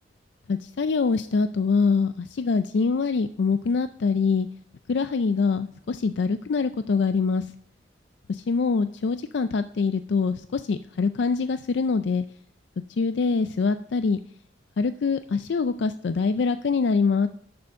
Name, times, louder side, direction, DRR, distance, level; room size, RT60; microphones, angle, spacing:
voice 1, 0.5-4.5 4.9-7.5 8.3-12.2 12.9-14.2 14.8-17.3, left 4 dB, 65° left, 11 dB, 0.4 m, -24 dB
10.5 x 7.0 x 5.3 m, 0.67 s
head